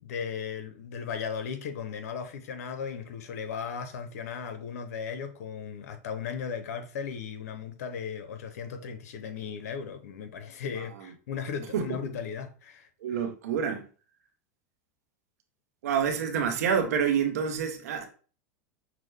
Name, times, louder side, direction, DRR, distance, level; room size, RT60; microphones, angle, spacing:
voice 1, 0.0-12.9, left 6 dB, 80° left, 0.7 m, -36 dB
voice 2, 13.0-13.9 15.8-18.1, right 7 dB, 85° right, 0.9 m, -27 dB
5.9 x 2.1 x 3.2 m
hypercardioid pair, 115°, 8 cm